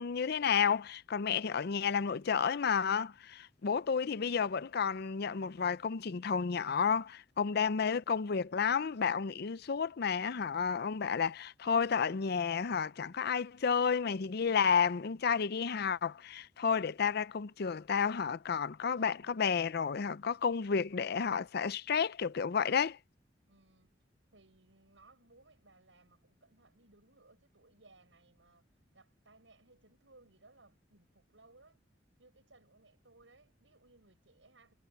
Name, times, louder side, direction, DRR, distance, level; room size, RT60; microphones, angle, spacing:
voice 1, 0.0-23.0, left 6 dB, 60° left, 0.5 m, -31 dB
voice 2, 3.7-4.1 23.5-23.9 24.3-28.7 28.9-31.8 32.2-34.7, right 2 dB, 85° right, 7.3 m, -63 dB
head